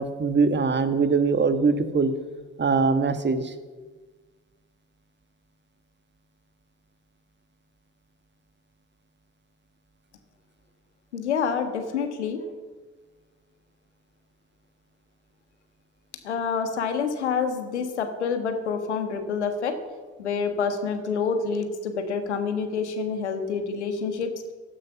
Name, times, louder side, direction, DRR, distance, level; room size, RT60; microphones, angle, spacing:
voice 1, 0.0-2.1 2.6-3.5, right 4 dB, 35° right, 9 dB, 1.6 m, -22 dB
voice 2, 11.1-12.4 16.2-19.8 20.2-24.3, left 5 dB, 90° left, 7 dB, 1.5 m, -27 dB
16.5 x 12.0 x 5.9 m, 1.3 s
hypercardioid pair, 50°, 33 cm